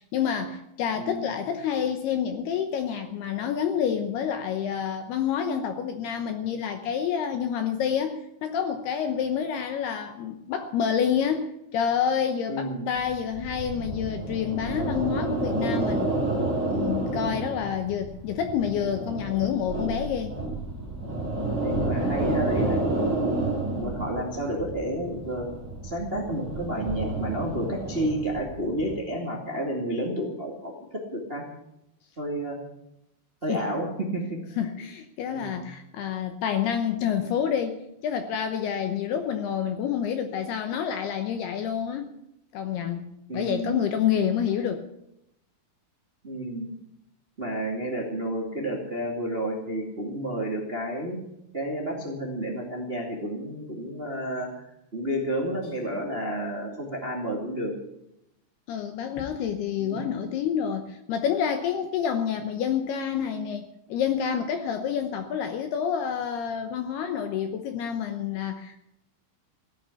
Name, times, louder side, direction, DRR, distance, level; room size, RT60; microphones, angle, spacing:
voice 1, 0.0-16.1 16.5-20.3 33.5-33.6 34.6-42.1 42.5-43.1 43.3-44.8 58.7-68.8, left 8 dB, 75° left, 7 dB, 2.5 m, -28 dB
voice 2, 0.9-1.3 12.5-12.9 21.6-22.8 23.2-23.3 23.7-25.5 25.8-31.4 32.2-32.6 33.4-34.7 35.3-35.6 43.3-43.8 46.2-46.7 47.4-51.2 51.5-54.6 54.9-57.7 59.8-60.1, right 1 dB, 50° right, 0 dB, 0.6 m, -31 dB
sound 1, 13.0-28.9, right 2 dB, 15° right, 4.1 m, -30 dB
16.5 x 9.1 x 8.3 m, 0.83 s
omnidirectional pair, 5.6 m